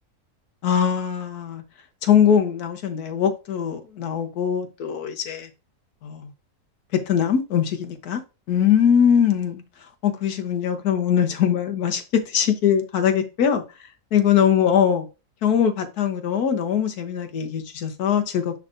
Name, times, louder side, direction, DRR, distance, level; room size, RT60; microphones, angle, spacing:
voice 1, 0.6-1.6 2.0-5.5 6.0-6.3 6.9-8.2 8.5-9.6 10.0-13.6 14.1-15.1 15.4-18.5, left 8 dB, 75° left, 1.5 m, -21 dB
10.5 x 3.6 x 2.6 m
omnidirectional pair, 1.6 m